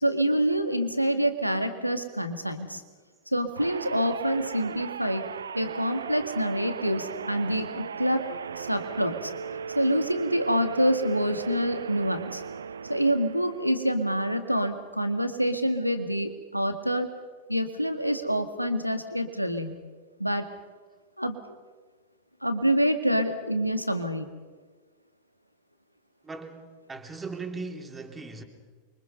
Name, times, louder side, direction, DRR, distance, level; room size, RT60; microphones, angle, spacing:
voice 1, 0.0-2.8 3.3-5.3 5.6-8.2 8.6-9.3 9.7-12.4 12.9-17.1 17.5-19.7 20.2-20.5 21.2-21.4 22.4-24.3, equal, 90° right, 8 dB, 1.8 m, -26 dB
sound 1, 3.6-13.9, right 6 dB, 70° right, 0.6 m, -37 dB
voice 2, 26.2-28.4, right 3 dB, 15° right, 4 dB, 3.0 m, -38 dB
28.5 x 24.0 x 5.5 m, 1.4 s
figure-of-eight pair, 90°, 0 cm